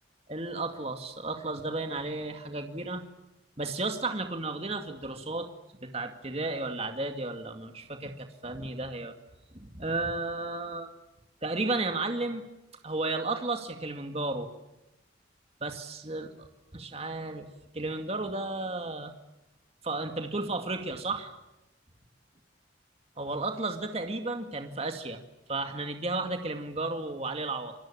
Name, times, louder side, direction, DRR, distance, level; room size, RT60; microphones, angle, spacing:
voice 1, 0.3-3.0 3.6-5.5 5.8-9.1 9.5-10.9 11.4-12.4 12.8-14.5 15.6-16.5 16.7-17.5 17.7-19.1 19.8-21.3 23.2-25.2 25.5-27.7, right 2 dB, 30° right, 5 dB, 2.2 m, -33 dB
28.0 x 22.5 x 8.8 m, 0.95 s
head